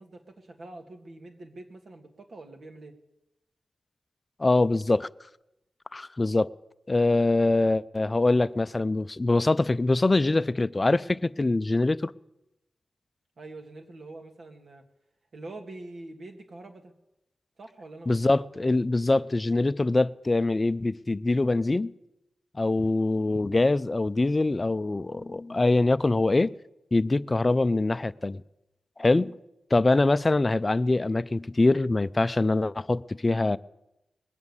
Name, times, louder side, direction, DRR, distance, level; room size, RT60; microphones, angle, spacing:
voice 1, 0.0-3.0 13.4-14.8 15.3-16.9 17.6-18.7, right 2 dB, 65° right, 2.0 m, -45 dB
voice 2, 4.4-5.1 5.9-6.5 6.9-12.1 18.1-21.9 22.5-26.5 26.9-28.4 29.0-29.3 29.7-33.6, left 2 dB, 30° left, 0.4 m, -24 dB
21.0 x 8.1 x 7.2 m
cardioid pair, 65°, 0 cm